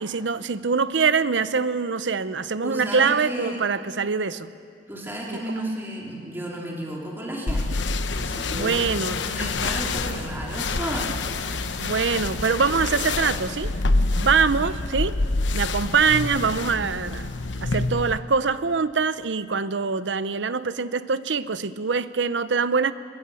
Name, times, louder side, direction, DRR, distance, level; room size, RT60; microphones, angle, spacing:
voice 1, 0.0-4.5 5.3-5.4 8.5-9.2 9.9-10.0 11.8-13.7 14.2-15.2 15.5-17.3 17.6-22.9, right 5 dB, 80° right, 15 dB, 0.7 m, -24 dB
voice 2, 2.6-3.6 4.9-7.8 8.1-11.1, right 1 dB, 10° right, -3 dB, 3.4 m, -33 dB
sound 1, 7.5-18.2, left 3 dB, 85° left, 1.0 m, -27 dB
25.0 x 21.5 x 7.1 m, 2.5 s
head